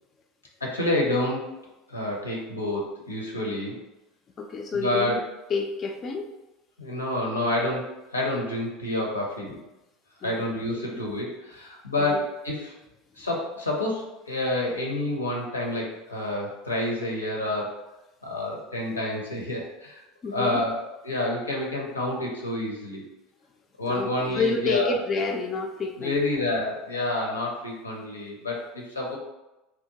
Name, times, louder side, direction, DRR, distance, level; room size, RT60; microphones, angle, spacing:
voice 1, 0.6-1.5 1.9-3.8 4.7-5.2 6.8-7.9 8.1-9.6 10.2-12.7 13.2-17.7 18.2-20.0 20.3-20.8 21.0-23.0 23.8-25.0 26.0-29.2, left 1 dB, 80° left, -1 dB, 0.6 m, -28 dB
voice 2, 4.4-5.2 5.5-6.3 10.2-10.4 10.9-11.0 12.0-12.2 20.2-20.6 23.9-26.2, left 4 dB, 30° left, 1 dB, 0.3 m, -29 dB
2.8 x 2.2 x 2.7 m, 0.98 s
figure-of-eight pair, 75°, 0 cm